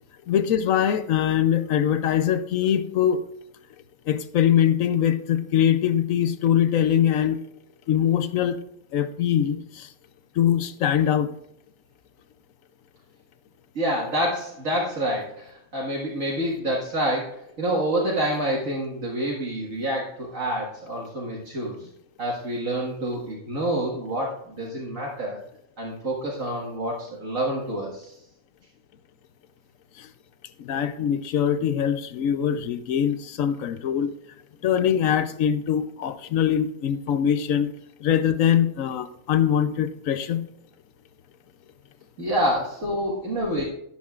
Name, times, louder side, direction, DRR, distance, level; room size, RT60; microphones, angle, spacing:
voice 1, 0.3-3.2 4.1-7.4 7.9-8.6 8.9-9.9 10.4-11.3 30.0-30.1 30.6-34.1 34.6-37.7 38.0-40.4, left 9 dB, 70° left, 12 dB, 1.0 m, -22 dB
voice 2, 13.8-21.9 22.2-25.4 25.8-28.1 42.2-43.6, right 1 dB, 60° right, -4 dB, 2.2 m, -27 dB
12.5 x 9.6 x 2.4 m, 0.74 s
omnidirectional pair, 1.5 m